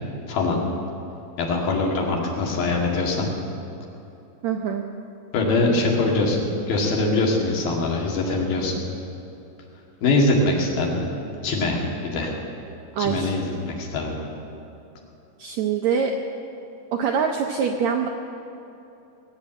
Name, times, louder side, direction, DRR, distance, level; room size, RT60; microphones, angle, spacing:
voice 1, 0.3-0.6 1.4-3.3 5.3-8.8 10.0-11.1 11.4-12.3 13.0-14.2, left 2 dB, 85° left, -1 dB, 4.0 m, -23 dB
voice 2, 4.4-4.8 12.9-13.3 15.4-16.2 16.9-18.1, right 7 dB, 80° right, 3 dB, 1.6 m, -24 dB
18.5 x 8.6 x 8.7 m, 2.8 s
omnidirectional pair, 4.1 m